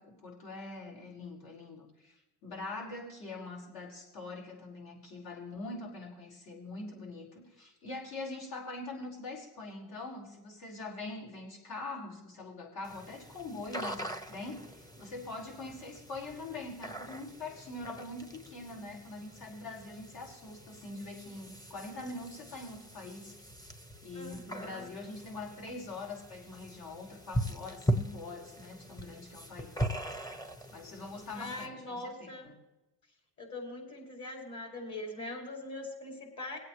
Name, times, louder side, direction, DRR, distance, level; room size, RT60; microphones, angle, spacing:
voice 1, 0.0-2.1 2.4-23.4 24.0-29.9 30.7-32.5, left 2 dB, 60° left, -2 dB, 5.0 m, -43 dB
sound 1, 12.8-31.7, equal, 10° left, 1.1 m, -40 dB
voice 2, 24.1-24.9 31.3-32.5 33.4-36.6, left 2 dB, 45° left, 1 dB, 5.1 m, -42 dB
22.0 x 8.5 x 3.2 m, 0.97 s
cardioid pair, 120°, 42 cm